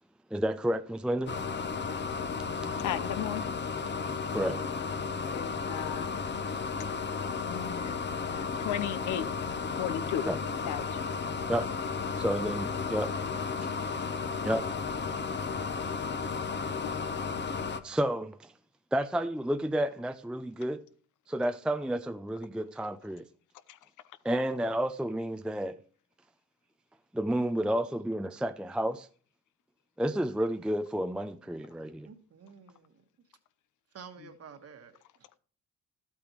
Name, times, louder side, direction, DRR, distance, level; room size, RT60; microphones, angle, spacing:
voice 1, 0.3-1.3 2.6-2.8 4.3-4.6 10.2-10.4 11.5-11.7 12.2-13.1 14.4-14.7 15.9-16.0 17.8-18.5 18.9-20.8 21.3-23.3 24.2-25.8 27.1-29.1 30.0-32.1, right 1 dB, 5° right, 0.4 m, -31 dB
sound 1, 1.3-17.8, left 5 dB, 35° left, 0.8 m, -33 dB
voice 2, 2.8-3.5 5.3-6.1 7.4-9.3 9.8-10.3 10.6-11.0 23.7-23.8, left 11 dB, 80° left, 0.8 m, -35 dB
voice 3, 32.0-33.0 33.9-35.3, right 6 dB, 50° right, 1.5 m, -50 dB
12.0 x 8.6 x 3.1 m
cardioid pair, 90°, 30 cm